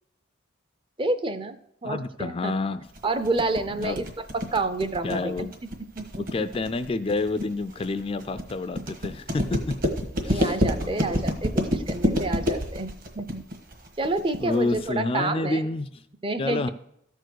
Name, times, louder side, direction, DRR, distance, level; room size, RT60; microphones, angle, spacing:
voice 1, 1.0-2.5 3.0-4.0 4.5-5.5 6.0-6.5 10.3-13.4 14.0-15.6 16.2-16.7, right 2 dB, 25° right, 11 dB, 0.6 m, -29 dB
voice 2, 1.8-2.8 3.7-4.1 5.0-5.5 6.3-9.9 10.2-10.6 10.8-11.2 14.4-16.0 16.4-16.7, left 2 dB, 25° left, 11 dB, 0.3 m, -29 dB
sound 1, 2.9-14.9, equal, 45° right, 1.5 m, -28 dB
13.5 x 4.6 x 6.3 m, 0.75 s
head